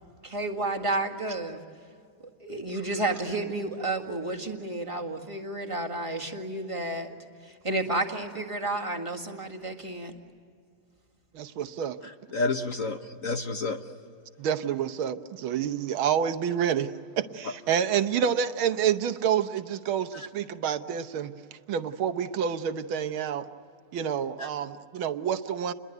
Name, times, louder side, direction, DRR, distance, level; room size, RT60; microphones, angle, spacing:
voice 1, 0.2-1.6 2.4-7.1 7.4-10.1, right 2 dB, 15° right, 1 dB, 1.6 m, -31 dB
voice 2, 11.3-12.0 14.4-23.5 23.9-25.7, right 8 dB, 75° right, 10 dB, 1.8 m, -28 dB
voice 3, 12.0-13.8 17.4-17.5 20.1-20.3 24.4-24.5, left 3 dB, 50° left, 6 dB, 1.1 m, -30 dB
29.0 x 22.0 x 9.3 m, 2.3 s
omnidirectional pair, 2.3 m